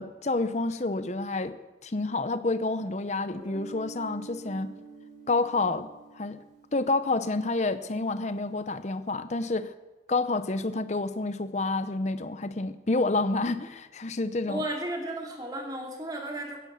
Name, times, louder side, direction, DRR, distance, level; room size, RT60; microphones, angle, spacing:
voice 1, 0.0-1.6 1.8-4.7 5.3-5.9 6.1-6.4 6.7-9.7 10.1-14.6, left 3 dB, 40° left, 12 dB, 0.7 m, -29 dB
Guitar, 3.3-7.9, right 4 dB, 45° right, 5.6 m, -47 dB
voice 2, 14.5-16.6, right 1 dB, 20° right, 0 dB, 2.9 m, -34 dB
15.5 x 9.7 x 8.2 m, 1.2 s
head